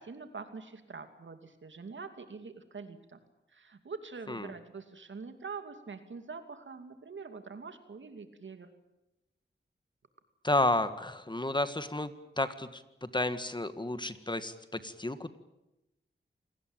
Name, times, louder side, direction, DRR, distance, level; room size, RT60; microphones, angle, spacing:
voice 1, 0.0-3.2 3.5-8.7, right 4 dB, 75° right, 7 dB, 2.7 m, -44 dB
voice 2, 10.4-15.4, left 2 dB, 25° left, 11 dB, 1.8 m, -32 dB
27.5 x 19.0 x 9.1 m, 0.93 s
wide cardioid pair, 70°, 20 cm